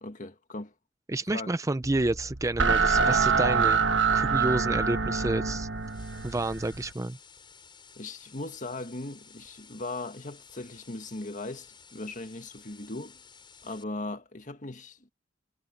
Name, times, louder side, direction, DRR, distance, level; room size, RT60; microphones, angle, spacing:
voice 1, 0.0-0.7 1.3-1.5 8.0-13.2 13.6-15.0, left 2 dB, 45° left, 1.9 m, -38 dB
voice 2, 1.1-3.8 4.1-5.7 6.2-7.2, right 2 dB, 15° right, 0.5 m, -29 dB
sound 1, 1.8-6.9, right 5 dB, 85° right, 1.2 m, -26 dB
sound 2, 5.8-13.8, left 6 dB, 25° left, 7.1 m, -54 dB
head